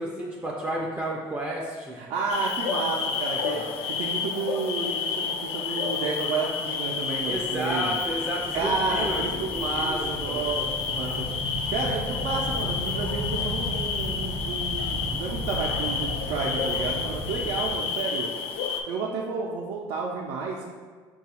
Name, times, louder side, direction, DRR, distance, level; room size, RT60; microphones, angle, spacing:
voice 1, 0.0-2.0 3.5-3.7 7.3-10.7, right 1 dB, 15° right, -3 dB, 0.4 m, -32 dB
voice 2, 1.9-3.6 3.9-8.0 8.5-11.2 11.7-18.3 18.9-20.6, right 4 dB, 90° right, -3 dB, 0.4 m, -31 dB
sound 1, 2.3-18.8, left 6 dB, 75° left, 0.4 m, -30 dB
sound 2, 7.5-17.8, equal, 55° left, 0.8 m, -35 dB
5.4 x 2.3 x 2.9 m, 1.5 s
cardioid pair, 145°, 10 cm